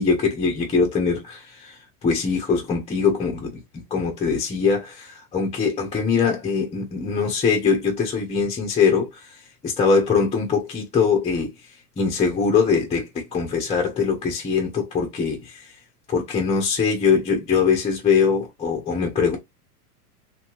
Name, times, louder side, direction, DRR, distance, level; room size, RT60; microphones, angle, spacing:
voice 1, 0.0-11.5 12.0-15.7 16.1-19.4, left 5 dB, 15° left, 0.8 m, -22 dB
2.9 x 2.8 x 2.9 m
hypercardioid pair, 115°, 46 cm